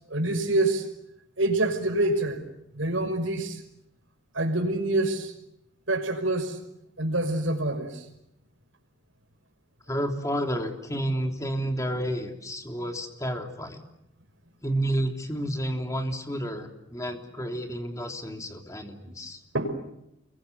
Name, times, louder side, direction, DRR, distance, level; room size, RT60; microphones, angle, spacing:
voice 1, 0.1-0.9 1.4-2.4 2.7-3.6 4.3-5.3 5.9-6.6 7.0-8.0 19.5-19.7, right 2 dB, 80° right, 5 dB, 5.8 m, -26 dB
voice 2, 9.9-13.8 14.6-19.4, right 1 dB, 15° left, 4 dB, 3.3 m, -30 dB
29.5 x 23.0 x 8.1 m, 0.83 s
head